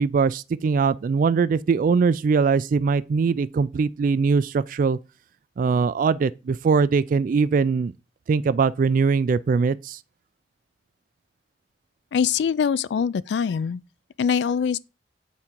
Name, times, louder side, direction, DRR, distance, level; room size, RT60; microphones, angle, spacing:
voice 1, 0.0-5.0 5.6-7.9 8.3-10.0, right 5 dB, 50° right, 0.3 m, -21 dB
voice 2, 12.1-13.8 14.2-14.8, left 7 dB, 70° left, 0.3 m, -23 dB
8.3 x 3.6 x 4.4 m
head